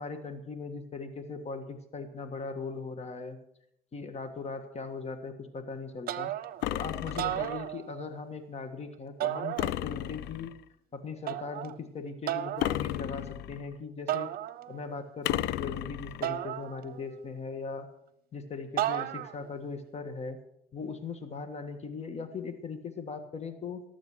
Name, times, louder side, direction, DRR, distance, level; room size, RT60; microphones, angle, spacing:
voice 1, 0.0-3.4 3.9-6.3 6.7-10.5 10.9-14.3 14.7-17.9 18.3-20.4 20.7-23.8, left 4 dB, 40° left, 9 dB, 1.6 m, -39 dB
sound 1, 6.1-6.7 7.1-8.2 9.2-10.1 11.3-11.8 12.3-12.8 14.1-14.9 16.2-17.2 18.8-19.5, right 13 dB, 65° right, 0.8 m, -34 dB
sound 2, 6.6-7.7 9.6-10.6 12.6-13.7 15.2-16.3, left 14 dB, 85° left, 0.5 m, -33 dB
18.0 x 7.3 x 6.3 m, 0.77 s
cardioid pair, 110°, 17 cm